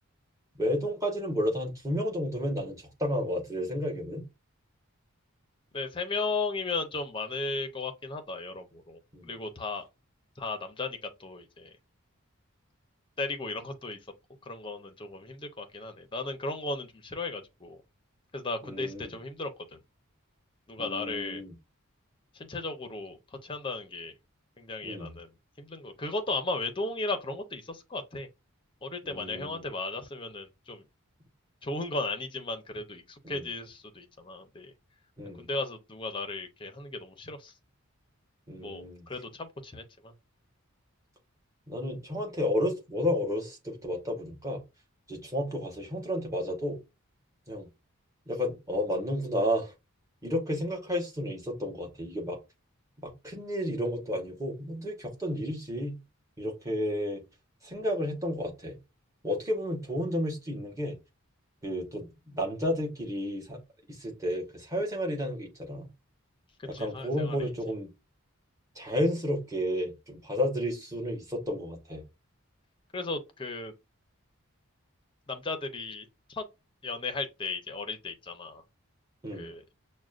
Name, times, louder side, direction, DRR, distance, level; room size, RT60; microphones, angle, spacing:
voice 1, 0.5-4.2 9.1-9.3 18.6-19.1 20.8-21.5 24.8-25.1 29.0-29.6 33.2-33.4 35.2-35.5 38.5-39.0 41.7-44.6 45.1-46.8 47.5-47.7 48.3-49.7 50.2-52.4 53.0-56.0 56.4-57.2 57.6-58.7 59.2-61.0 61.6-62.1 62.3-63.6 63.9-65.9 66.6-67.9 68.7-72.0 79.2-79.5, equal, 15° right, 1.1 m, -32 dB
voice 2, 5.7-9.9 10.4-11.7 13.2-14.0 14.5-17.8 18.3-19.8 20.7-21.4 22.3-24.1 24.6-25.3 25.6-28.3 28.8-30.8 31.6-34.7 35.4-37.5 38.6-40.1 66.7-67.4 72.9-73.7 75.3-76.4 76.8-78.6 79.3-79.6, left 3 dB, 20° left, 0.6 m, -35 dB
6.1 x 2.2 x 2.4 m
head